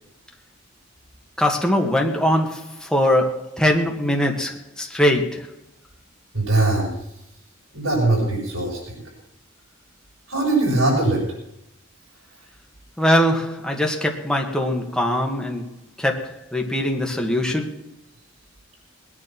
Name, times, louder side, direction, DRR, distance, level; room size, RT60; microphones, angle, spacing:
voice 1, 1.4-5.5 13.0-15.6 16.0-17.8, left 1 dB, 5° left, 2.0 m, -22 dB
voice 2, 6.3-6.9 7.7-9.0 10.3-11.2, right 2 dB, 85° right, 6.7 m, -21 dB
20.0 x 9.9 x 6.0 m
head